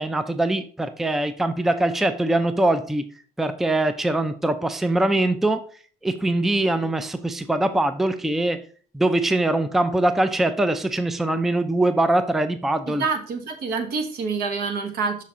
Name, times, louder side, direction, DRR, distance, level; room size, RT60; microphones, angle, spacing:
voice 1, 0.0-3.0 3.4-5.6 6.0-8.6 8.9-13.0, right 1 dB, ahead, 10 dB, 0.4 m, -22 dB
voice 2, 12.9-15.2, right 4 dB, 70° right, 6 dB, 1.3 m, -27 dB
6.0 x 5.7 x 3.7 m, 0.43 s
cardioid pair, 110°, 17 cm